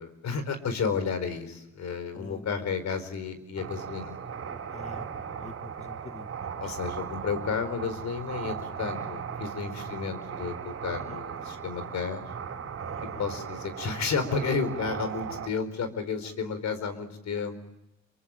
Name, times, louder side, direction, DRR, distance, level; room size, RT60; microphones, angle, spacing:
voice 1, 0.0-4.2 6.6-12.3 13.2-17.6, left 5 dB, 65° left, 11 dB, 4.8 m, -32 dB
voice 2, 2.1-2.5 4.7-6.7 9.9-10.0 11.1-11.2 12.8-13.2, left 3 dB, 20° left, 8 dB, 1.5 m, -46 dB
sound 1, 3.6-15.5, right 7 dB, 50° right, 4.0 m, -37 dB
27.5 x 23.5 x 8.8 m, 0.86 s
cardioid pair, 90°, 30 cm